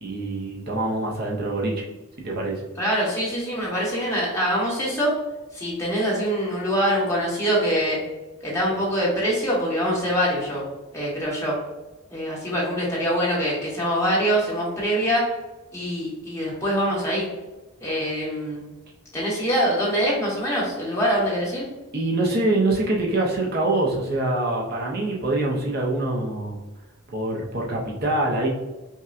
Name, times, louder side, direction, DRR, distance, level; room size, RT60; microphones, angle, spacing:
voice 1, 0.0-1.9 2.2-2.6 21.9-26.6 27.1-28.5, right 2 dB, 45° right, -3 dB, 0.6 m, -24 dB
voice 2, 2.8-5.1 5.5-8.0 8.4-10.6 10.9-11.6 12.1-15.3 15.7-17.3 17.8-18.6 19.1-21.6, equal, 15° left, -6 dB, 1.2 m, -24 dB
5.3 x 2.2 x 2.5 m, 1.1 s
head